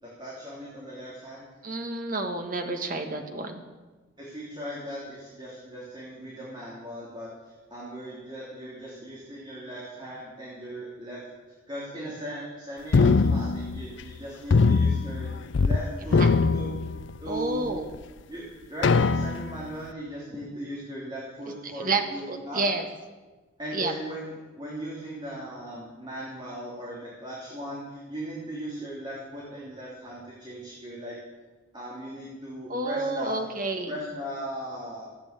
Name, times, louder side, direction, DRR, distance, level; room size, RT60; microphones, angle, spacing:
voice 1, 0.0-1.5 4.2-11.2 11.7-16.2 16.5-16.8 17.2-17.7 18.3-22.6 23.6-31.2 31.7-33.5 33.9-35.1, right 1 dB, 20° right, -6 dB, 3.1 m, -38 dB
voice 2, 1.6-3.6 16.1-16.3 17.3-17.9 21.7-22.0 22.3-22.8 23.7-23.9 32.7-33.9, right 2 dB, 45° right, 5 dB, 1.5 m, -29 dB
sound 1, 12.9-14.2 14.5-15.8 16.1-17.4 17.9-18.0 18.8-19.7, left 4 dB, 65° left, 0.4 m, -22 dB
14.5 x 9.0 x 8.0 m, 1.3 s
head